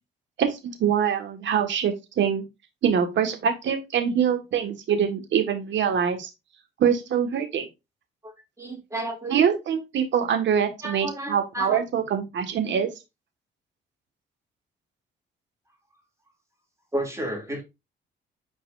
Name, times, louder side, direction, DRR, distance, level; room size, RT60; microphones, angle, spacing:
voice 1, 0.4-2.4 2.8-6.3 6.8-7.7 9.3-12.9, right 8 dB, 70° right, 1.7 m, -24 dB
voice 2, 8.6-9.4 10.8-11.8 16.9-17.6, right 1 dB, 15° right, 2.8 m, -32 dB
9.4 x 4.6 x 2.6 m
cardioid pair, 90°, 20 cm